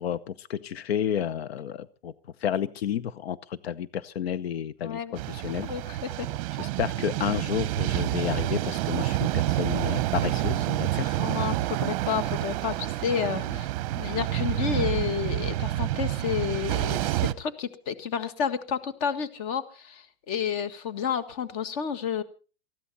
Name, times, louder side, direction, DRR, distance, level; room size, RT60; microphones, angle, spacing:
voice 1, 0.0-2.1 2.4-5.7 6.6-11.2, left 9 dB, 85° left, 17 dB, 0.9 m, -31 dB
voice 2, 4.8-5.2 5.7-6.3 11.2-13.7 13.9-22.2, left 7 dB, 40° left, 12 dB, 1.7 m, -30 dB
sound 1, 5.2-17.3, right 15 dB, 35° right, 0.8 m, -28 dB
19.5 x 14.0 x 4.1 m, 0.37 s
supercardioid pair, 160°, 30 cm